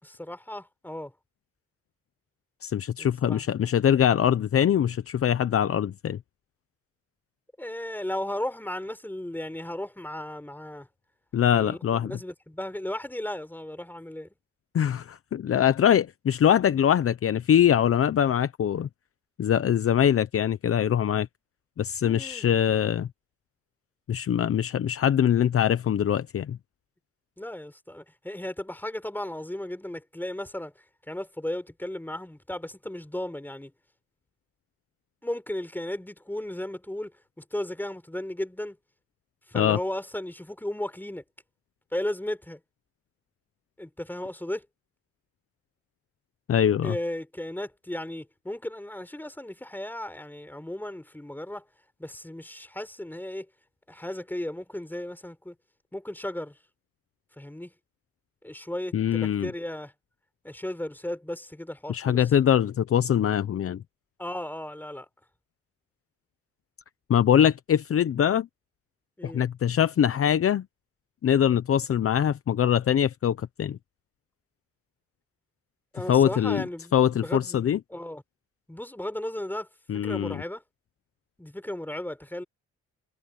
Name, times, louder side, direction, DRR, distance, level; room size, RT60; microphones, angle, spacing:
voice 1, 0.0-1.1 3.0-3.5 7.6-10.9 11.5-14.3 22.0-22.6 27.4-30.7 31.1-33.7 35.2-38.8 39.5-41.2 41.9-42.6 43.8-44.7 46.8-51.6 52.0-53.5 53.9-55.6 55.9-56.6 57.4-57.7 58.4-59.9 60.4-62.3 64.2-65.1 69.2-69.4 75.9-78.2 78.7-79.7 80.0-80.6 81.4-82.4, left 1 dB, 5° left, 5.0 m, -35 dB
voice 2, 2.6-6.2 11.3-12.1 14.7-18.9 19.4-21.3 21.8-23.1 24.1-26.6 39.5-39.8 46.5-46.9 58.9-59.5 61.9-63.8 67.1-68.5 69.2-70.6 71.2-73.8 76.1-76.6 76.9-77.8 79.9-80.4, left 9 dB, 50° left, 0.9 m, -23 dB
cardioid pair, 90°, 30 cm